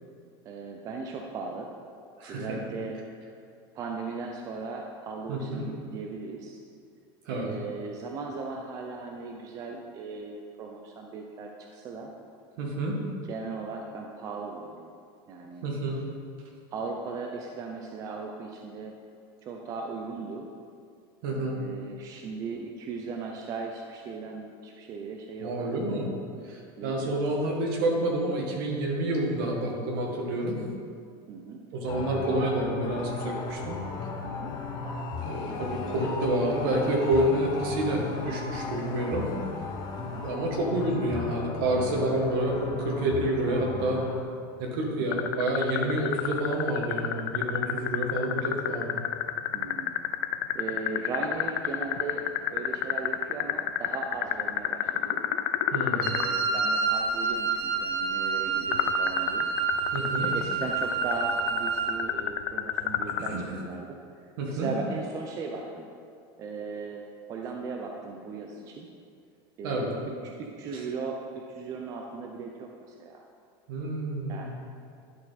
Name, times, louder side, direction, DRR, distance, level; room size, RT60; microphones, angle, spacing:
voice 1, 0.5-1.7 2.3-3.0 3.7-6.6 7.3-12.1 13.3-14.9 15.3-15.7 16.7-19.0 19.4-20.5 21.3-25.7 26.8-27.2 29.6-29.9 31.3-31.6 34.2-34.6 40.0-40.3 44.9-45.1 49.5-50.0 50.5-55.2 55.9-59.5 60.2-64.0 64.5-65.9 66.4-67.0 67.3-68.9 69.6-69.9 70.2-73.2 74.3-74.5, right 4 dB, 25° right, 2 dB, 0.5 m, -37 dB
voice 2, 2.2-2.6 5.3-5.6 7.3-7.5 12.6-13.0 15.6-15.9 21.2-21.6 25.4-26.1 26.4-30.6 31.7-33.7 35.2-39.3 40.2-44.0 44.6-48.9 55.7-56.1 59.9-60.3 63.3-63.5 64.4-64.7 69.6-69.9 70.7-70.8 73.7-74.4, right 1 dB, 65° right, -1 dB, 1.7 m, -28 dB
sound 1, 31.9-44.2, left 4 dB, 35° left, 0.8 m, -35 dB
sound 2, 45.1-56.3 58.7-63.3, left 13 dB, 70° left, 0.5 m, -28 dB
Wind instrument woodwind instrument, 56.0-62.0, right 5 dB, 80° right, 0.8 m, -28 dB
11.5 x 4.4 x 4.1 m, 2.3 s
supercardioid pair, 165°, 13 cm